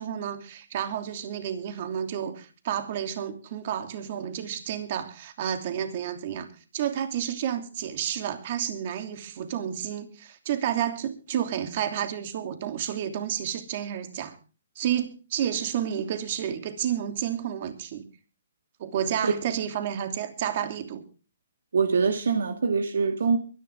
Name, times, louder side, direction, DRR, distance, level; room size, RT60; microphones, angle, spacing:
voice 1, 0.0-6.5 6.7-14.3 14.8-18.0 18.8-21.0, right 9 dB, 50° right, 2.9 m, -30 dB
voice 2, 21.7-23.4, right 5 dB, 75° right, 1.8 m, -23 dB
23.5 x 11.0 x 3.6 m
hypercardioid pair, 140°, 0 cm